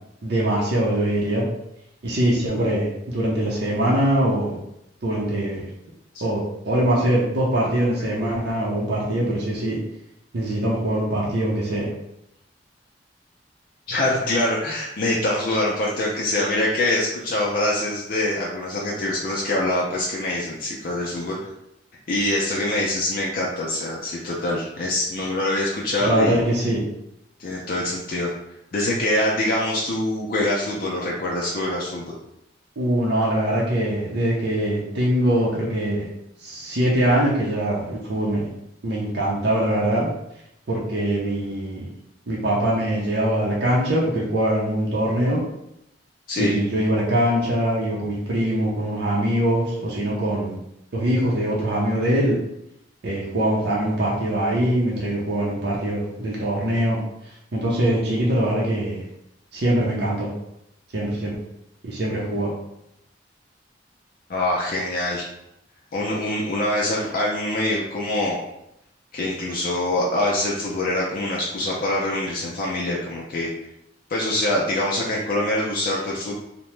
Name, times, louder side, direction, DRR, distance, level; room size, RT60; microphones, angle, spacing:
voice 1, 0.2-1.5 2.0-4.5 5.0-5.6 6.2-9.8 10.3-11.9 26.0-26.8 32.8-36.0 36.4-38.5 38.8-40.1 40.7-41.9 42.3-45.4 46.4-50.6 50.9-52.3 53.0-57.0 57.5-59.0 59.5-60.3 60.9-61.3 61.8-62.5, right 1 dB, 65° right, -5 dB, 0.6 m, -22 dB
voice 2, 13.9-21.4 22.1-26.4 27.4-28.3 28.7-32.1 46.3-46.6 64.3-65.3 65.9-68.4 69.1-73.5 74.1-76.4, left 1 dB, 50° left, -4 dB, 0.4 m, -24 dB
2.8 x 2.1 x 3.1 m, 0.82 s
head